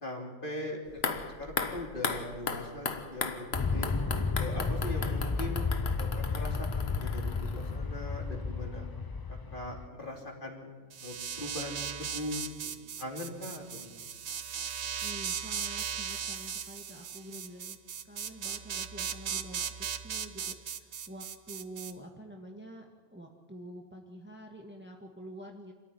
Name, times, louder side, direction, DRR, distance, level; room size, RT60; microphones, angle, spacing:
voice 1, 0.0-3.9 4.4-8.9 9.5-10.7 11.0-12.7 13.0-14.0, left 1 dB, 45° left, 1 dB, 3.5 m, -40 dB
sound 1, 0.9-8.0 8.3-8.4, left 5 dB, 60° left, 1.5 m, -37 dB
Aircraft, 3.5-9.9, left 4 dB, 25° left, 0.6 m, -32 dB
sound 2, 10.9-21.9, right 8 dB, 70° right, 1.2 m, -37 dB
voice 2, 15.0-17.8 18.0-19.6 20.0-22.9 23.1-25.7, equal, 10° right, 2 dB, 1.7 m, -47 dB
26.0 x 13.5 x 10.0 m, 1.5 s
omnidirectional pair, 1.2 m